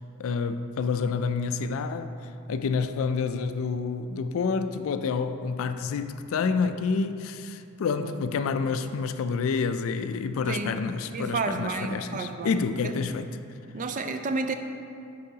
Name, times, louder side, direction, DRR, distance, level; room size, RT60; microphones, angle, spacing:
voice 1, 0.2-2.1 2.5-13.3, left 5 dB, 65° left, 0.3 m, -28 dB
voice 2, 10.5-13.0 13.7-14.5, right 3 dB, 35° right, 0.3 m, -31 dB
10.0 x 4.7 x 2.8 m
head